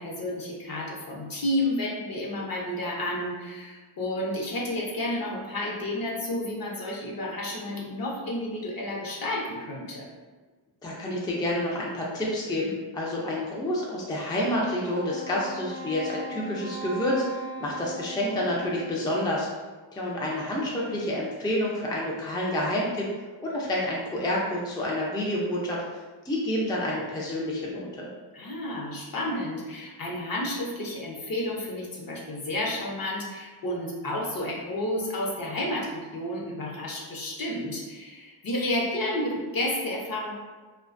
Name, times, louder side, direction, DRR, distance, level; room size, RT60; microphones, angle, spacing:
voice 1, 0.0-10.1 28.3-40.4, left 1 dB, 50° left, -3 dB, 0.7 m, -31 dB
voice 2, 10.8-19.5 19.9-23.1 23.4-25.8 26.2-28.1, left 1 dB, 10° left, -4 dB, 0.4 m, -29 dB
Wind instrument woodwind instrument, 14.8-19.4, right 1 dB, 65° right, 0.6 m, -39 dB
2.4 x 2.2 x 2.5 m, 1.3 s
cardioid pair, 70°, 46 cm